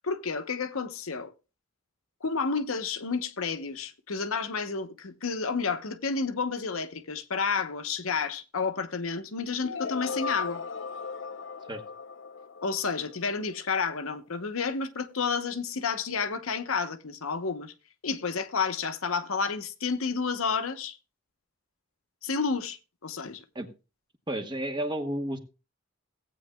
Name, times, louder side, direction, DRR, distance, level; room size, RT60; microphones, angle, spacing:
voice 1, 0.0-1.3 2.2-10.6 12.6-17.7 18.0-21.0 22.2-22.8 23.0-23.4, left 5 dB, 80° left, 0.9 m, -30 dB
sound 1, 9.6-13.5, left 5 dB, 60° left, 0.6 m, -36 dB
voice 2, 24.3-25.4, right 1 dB, 20° right, 1.0 m, -31 dB
16.5 x 8.5 x 2.2 m
head